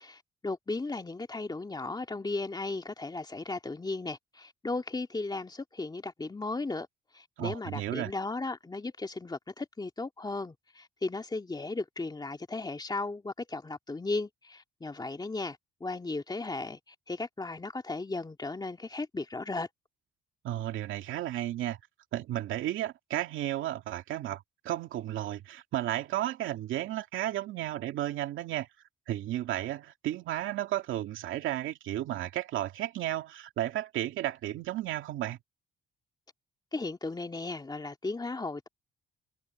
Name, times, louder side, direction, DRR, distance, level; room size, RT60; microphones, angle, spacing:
voice 1, 0.0-6.9 7.1-19.7 36.7-38.7, left 3 dB, 20° left, 2.3 m, -36 dB
voice 2, 7.4-8.1 20.4-21.8 22.1-28.7 29.1-35.4, right 13 dB, 85° right, 2.3 m, -33 dB
cardioid pair, 90°, 20 cm